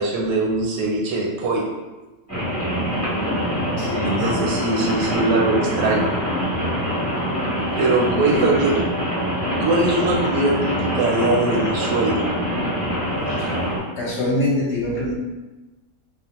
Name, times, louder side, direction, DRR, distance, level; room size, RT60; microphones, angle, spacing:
voice 1, 0.0-1.7 4.1-6.2 7.8-8.8 9.6-12.3, right 2 dB, 80° right, -1 dB, 1.0 m, -21 dB
Rain, 2.3-13.8, equal, 20° right, 0.4 m, -24 dB
voice 2, 3.8-4.4 8.3-8.5 13.4-13.5 14.0-15.1, left 1 dB, 65° left, -4 dB, 0.8 m, -24 dB
2.3 x 2.1 x 2.8 m, 1.1 s
omnidirectional pair, 1.4 m